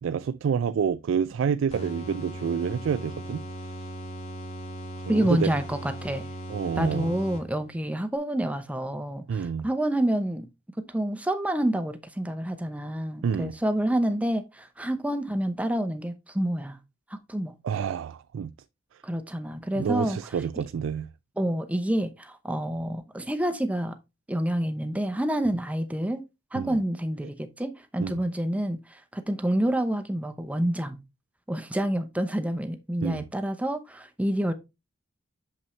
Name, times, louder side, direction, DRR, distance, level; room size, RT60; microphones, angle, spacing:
voice 1, 0.0-3.4 5.1-5.6 6.5-7.2 9.3-9.6 13.2-13.5 17.6-18.5 19.8-21.1 26.5-26.8 28.0-28.2 33.0-33.2, right 7 dB, 75° right, 0.3 m, -28 dB
sound 1, 1.7-7.8, right 1 dB, 35° left, 2.0 m, -38 dB
voice 2, 5.1-6.3 6.8-10.5 10.9-16.8 17.1-17.5 19.0-20.2 21.4-24.0 24.3-26.2 26.5-31.0 31.5-34.5, right 1 dB, 5° right, 0.8 m, -28 dB
7.0 x 5.4 x 3.1 m
head